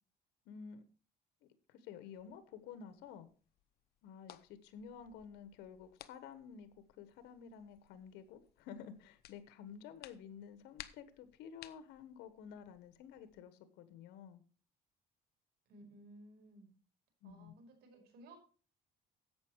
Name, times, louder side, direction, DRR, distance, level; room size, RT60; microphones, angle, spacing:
voice 1, 0.5-0.8 1.4-3.3 4.0-6.7 7.0-14.4 17.2-17.5, left 7 dB, 90° left, 11 dB, 1.3 m, -52 dB
sound 1, 2.1-13.4, left 13 dB, 70° left, 0.9 m, -60 dB
voice 2, 15.7-16.7 17.2-18.4, right 2 dB, 70° right, 2 dB, 5.1 m, -57 dB
11.5 x 8.1 x 4.6 m, 0.38 s
cardioid pair, 110°, 17 cm